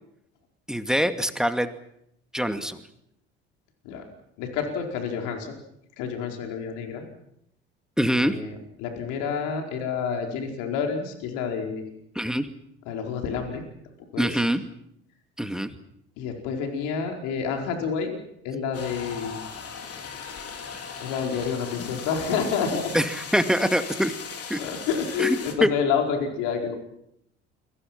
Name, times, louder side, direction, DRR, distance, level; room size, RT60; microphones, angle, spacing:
voice 1, 0.7-1.7 2.3-2.8 8.0-8.4 12.2-12.5 14.2-14.6 15.4-15.7 22.9-24.1 24.5-24.6 25.2-25.4 25.6-25.7, equal, ahead, 8 dB, 2.4 m, -24 dB
voice 2, 4.4-5.6 6.0-7.0 8.1-12.0 12.8-13.6 14.1-14.5 16.2-18.2 18.4-19.4 21.0-22.9 24.6-26.8, left 6 dB, 65° left, 3 dB, 4.7 m, -29 dB
sound 1, 18.7-25.5, left 6 dB, 45° left, 4.2 m, -38 dB
29.5 x 24.0 x 6.1 m, 0.77 s
figure-of-eight pair, 60°, 33 cm